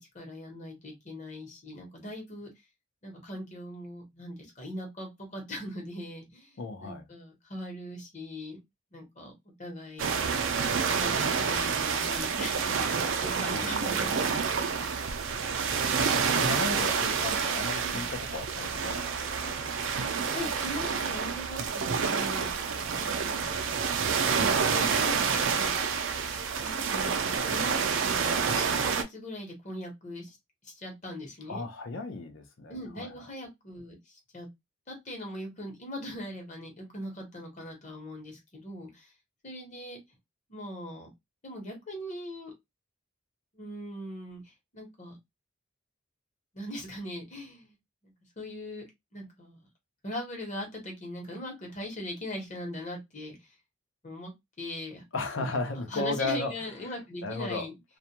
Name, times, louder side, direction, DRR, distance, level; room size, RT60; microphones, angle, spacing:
voice 1, 0.1-2.5 3.0-8.6 8.9-9.3 9.6-10.1 10.9-14.4 14.7-14.9 17.8-18.0 20.0-22.6 23.0-23.5 24.3-25.8 26.6-27.8 28.0-30.4 30.6-31.6 32.7-33.9 34.3-34.5 34.9-39.1 39.4-40.0 40.5-41.1 41.4-42.5 43.5-45.2 46.5-47.7 48.0-48.8 49.1-49.6 50.0-53.4 54.0-54.3 54.6-55.0 55.4-57.7, left 1 dB, 35° left, 1.0 m, -40 dB
voice 2, 6.6-7.0 13.5-14.2 16.1-19.5 31.5-33.2 55.1-57.7, left 3 dB, 70° left, 0.6 m, -35 dB
sound 1, 10.0-29.0, right 6 dB, 70° right, 0.4 m, -28 dB
2.4 x 2.2 x 2.8 m
head